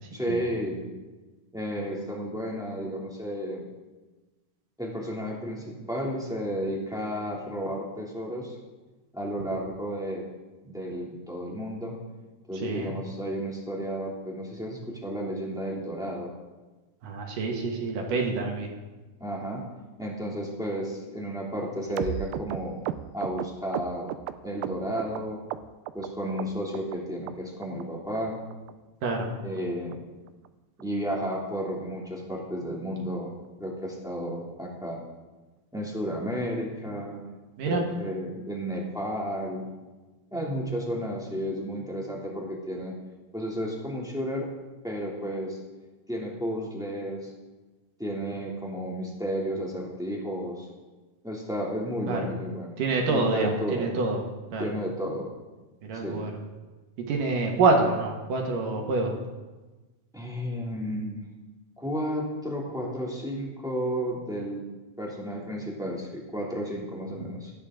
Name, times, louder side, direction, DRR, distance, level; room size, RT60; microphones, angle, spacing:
voice 1, 0.1-0.9 1.5-3.6 4.8-8.5 9.1-10.2 10.6-12.0 12.5-16.3 19.2-19.6 20.0-22.8 23.1-24.1 24.4-25.4 25.9-28.4 29.4-30.0 30.8-33.3 33.6-35.0 35.7-37.2 37.6-39.7 40.3-42.9 43.3-44.5 44.8-45.6 46.1-47.3 48.0-50.7 51.2-52.8 53.1-53.9 54.6-55.3 56.0-56.2 60.1-61.2 61.8-64.6 65.0-67.5, equal, ahead, -3 dB, 1.7 m, -32 dB
voice 2, 17.0-18.7 29.0-29.3 37.6-37.8 52.1-52.3 52.8-54.2 54.5-54.7 55.9-56.3 57.1-59.1 67.2-67.3, right 3 dB, 60° right, 1 dB, 3.0 m, -26 dB
sound 1, 22.0-25.2 25.5-26.1 26.4-27.0 27.3-27.4 27.6-27.9 28.2-28.3 28.5-28.7 29.0-29.1 29.4-29.6 29.9-30.0 30.3-30.5 30.8-30.9 31.2-31.4 31.7-31.8, right 13 dB, 85° right, 2.1 m, -35 dB
17.5 x 12.5 x 3.8 m, 1.2 s
omnidirectional pair, 4.6 m